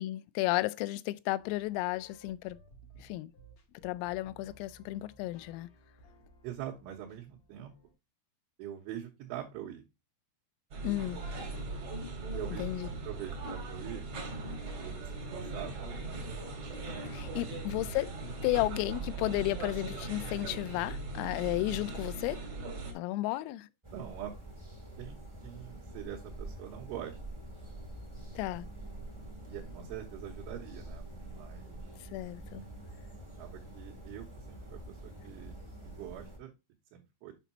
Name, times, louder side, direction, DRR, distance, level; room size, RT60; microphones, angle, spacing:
voice 1, 0.0-2.6 3.0-3.3 3.8-5.7 10.8-11.2 12.6-12.9 17.1-18.2 18.4-22.4 22.9-23.7 28.4-28.7 32.1-32.6, left 18 dB, 85° left, 3.2 m, -33 dB
sound 1, 1.4-7.9, right 1 dB, 65° left, 1.7 m, -59 dB
voice 2, 6.4-7.7 8.6-9.8 12.3-14.1 14.8-15.8 17.3-17.6 23.9-24.3 25.0-27.2 29.5-31.8 33.4-35.6 35.8-36.5 36.9-37.3, right 11 dB, 75° right, 3.4 m, -44 dB
sound 2, 10.7-22.9, right 3 dB, 50° right, 1.9 m, -39 dB
sound 3, 23.8-36.4, right 1 dB, 15° right, 0.9 m, -46 dB
8.2 x 5.9 x 2.8 m
omnidirectional pair, 5.9 m